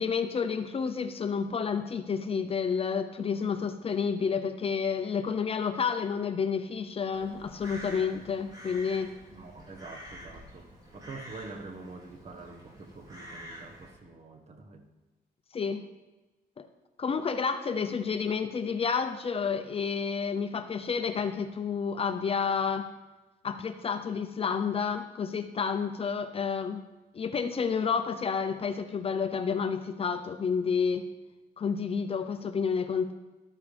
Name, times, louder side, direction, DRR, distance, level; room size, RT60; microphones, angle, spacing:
voice 1, 0.0-9.1 15.5-15.8 16.6-16.7 17.0-22.9 23.4-26.8 27.1-31.1 31.6-33.1, left 6 dB, 35° left, 8 dB, 0.7 m, -30 dB
Crow, 7.1-14.0, equal, 25° right, 3.6 m, -47 dB
voice 2, 9.3-14.9, right 3 dB, 40° right, 5 dB, 1.4 m, -46 dB
13.5 x 12.5 x 3.5 m, 1.1 s
cardioid pair, 125°, 16 cm